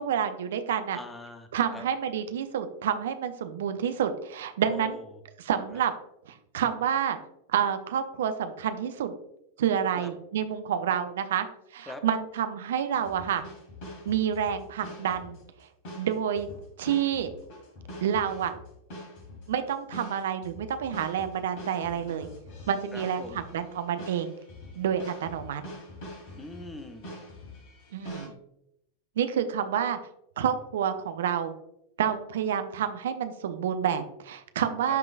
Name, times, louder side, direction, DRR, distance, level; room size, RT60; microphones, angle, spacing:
voice 1, 0.0-1.0 1.5-5.0 5.4-5.9 6.3-7.2 7.5-9.1 9.6-11.5 11.7-13.4 14.1-15.4 16.0-16.5 16.8-17.3 18.0-18.5 19.5-22.3 22.7-24.3 24.8-25.6 27.9-28.3 29.2-30.0 30.4-31.5 32.0-35.0, right 8 dB, 60° right, 9 dB, 0.5 m, -28 dB
voice 2, 0.9-1.8 4.7-5.0 5.7-5.8 9.9-10.1 11.9-12.0 22.9-23.4 26.3-27.1 34.9-35.0, left 2 dB, 10° left, 8 dB, 0.8 m, -42 dB
sound 1, 12.9-28.3, equal, 45° left, 2.2 m, -44 dB
11.0 x 3.8 x 2.4 m, 0.78 s
figure-of-eight pair, 90°, 0 cm